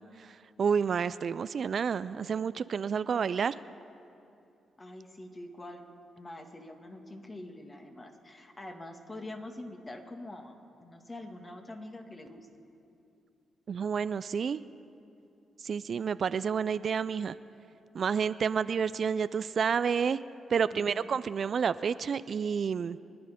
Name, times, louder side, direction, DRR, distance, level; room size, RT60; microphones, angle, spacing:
voice 1, 0.0-3.6 13.7-14.6 15.6-17.4 17.9-20.2 20.5-23.0, right 6 dB, 60° right, 15 dB, 0.4 m, -30 dB
voice 2, 4.8-5.8 6.2-12.5 20.7-21.0, left 1 dB, 30° left, 4 dB, 2.1 m, -45 dB
24.5 x 9.9 x 5.1 m, 2.7 s
supercardioid pair, 55°, 0 cm